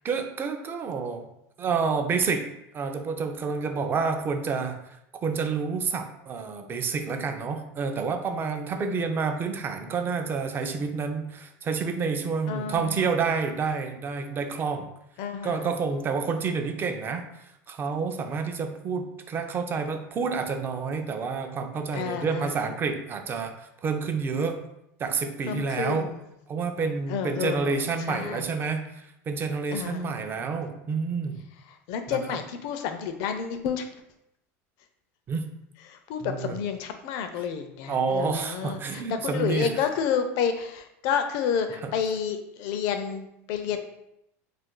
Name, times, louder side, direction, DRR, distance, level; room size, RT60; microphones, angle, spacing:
voice 1, 0.0-1.3 1.6-2.5 2.7-14.9 15.4-24.6 25.0-26.1 26.5-31.5 32.1-32.4 35.3-35.5 36.2-36.6 37.9-39.7 41.8-41.9, right 5 dB, 30° right, 6 dB, 0.4 m, -29 dB
voice 2, 12.5-13.1 15.2-15.9 21.9-22.6 25.5-26.2 27.1-28.5 29.7-30.2 31.9-33.9 35.9-43.8, left 7 dB, 65° left, 7 dB, 0.4 m, -30 dB
2.4 x 2.3 x 3.7 m, 0.81 s
supercardioid pair, 115°, 7 cm